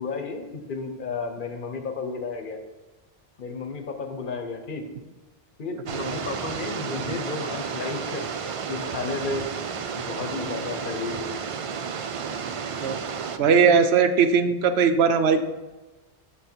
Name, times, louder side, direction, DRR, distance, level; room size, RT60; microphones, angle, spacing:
voice 1, 0.0-2.6 3.4-4.8 5.6-9.5 10.0-11.4, left 4 dB, 55° left, 6 dB, 0.9 m, -33 dB
sound 1, 5.9-13.4, right 6 dB, 60° right, 0.3 m, -32 dB
voice 2, 13.4-15.4, right 6 dB, 80° right, 9 dB, 0.9 m, -19 dB
6.3 x 6.2 x 4.4 m, 1.2 s
omnidirectional pair, 1.1 m